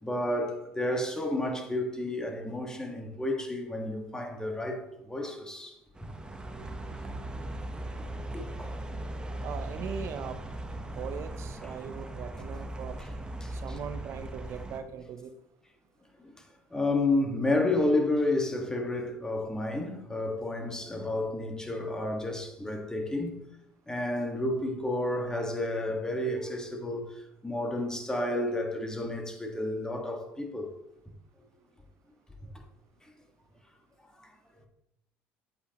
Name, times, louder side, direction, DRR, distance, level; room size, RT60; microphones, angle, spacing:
voice 1, 0.0-5.7 8.3-8.7 11.6-11.8 13.4-13.5 16.7-23.4 23.9-27.0 27.4-30.7, left 2 dB, 10° left, 1.5 m, -31 dB
sound 1, 5.9-14.8, right 1 dB, 15° right, 0.9 m, -38 dB
voice 2, 9.4-10.4 11.0-13.0 13.5-15.3, right 7 dB, 55° right, 0.6 m, -40 dB
8.2 x 7.9 x 2.9 m
supercardioid pair, 85°, 6 cm